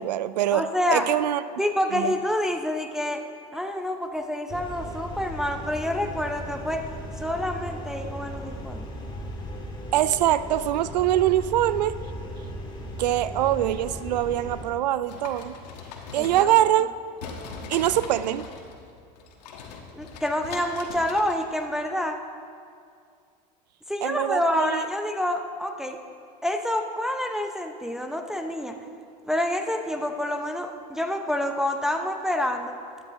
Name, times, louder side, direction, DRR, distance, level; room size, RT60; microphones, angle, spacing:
voice 1, 0.0-1.4 1.9-2.1 9.9-12.0 13.0-15.5 16.1-17.0 17.6-18.5 24.0-24.9, right 12 dB, 90° right, 16 dB, 0.4 m, -23 dB
voice 2, 0.5-1.1 1.6-3.2 3.5-6.9 7.2-8.9 16.2-16.5 19.9-22.2 23.9-26.0 26.4-28.8 29.2-32.7, left 1 dB, ahead, 4 dB, 0.6 m, -27 dB
sound 1, 4.5-14.6, equal, 20° left, 1.8 m, -37 dB
sound 2, 15.0-16.9 17.2-21.7, left 4 dB, 80° left, 1.4 m, -41 dB
12.5 x 10.0 x 3.7 m, 2.3 s
hypercardioid pair, 100°, 21 cm